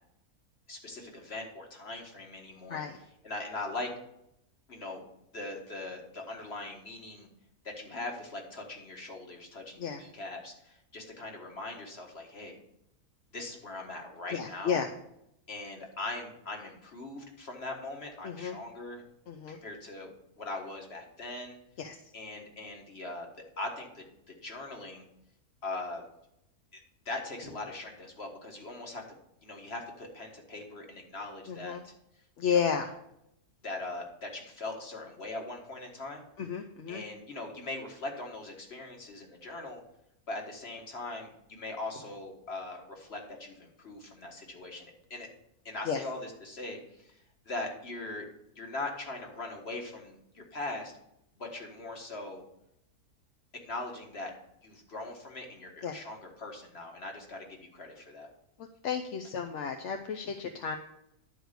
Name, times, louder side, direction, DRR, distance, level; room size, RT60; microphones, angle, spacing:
voice 1, 0.7-2.8 3.2-3.9 4.7-5.0 5.3-7.3 7.6-12.6 13.3-14.8 15.5-19.0 19.5-20.1 20.4-21.6 22.1-23.3 23.6-24.0 24.4-25.0 25.6-26.0 26.7-29.0 29.4-31.9 32.5-32.7 33.6-36.2 36.9-39.8 40.3-45.3 45.7-47.2 47.5-48.3 48.6-50.9 51.4-52.4 53.6-54.3 54.6-58.3, left 2 dB, 45° left, 2 dB, 1.9 m, -40 dB
voice 2, 14.3-14.9 18.2-18.6 19.3-19.6 21.8-22.0 31.5-31.8 32.4-32.9 36.4-37.0 45.9-46.0 55.8-56.0 58.8-60.8, left 7 dB, 60° left, 5 dB, 0.9 m, -32 dB
11.5 x 4.7 x 6.6 m, 0.80 s
omnidirectional pair, 1.6 m